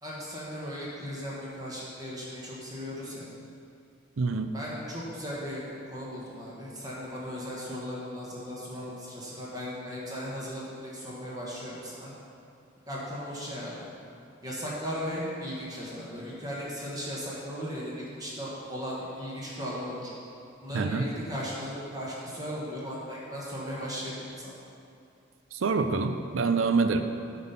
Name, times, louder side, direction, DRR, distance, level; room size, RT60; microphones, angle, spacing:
voice 1, 0.0-3.3 4.5-12.1 12.9-13.9 14.4-20.1 20.6-24.5, equal, 20° right, -6 dB, 1.3 m, -37 dB
voice 2, 4.2-4.5 20.7-21.1 25.5-27.0, right 4 dB, 90° right, 8 dB, 0.5 m, -26 dB
9.4 x 3.9 x 5.7 m, 2.5 s
head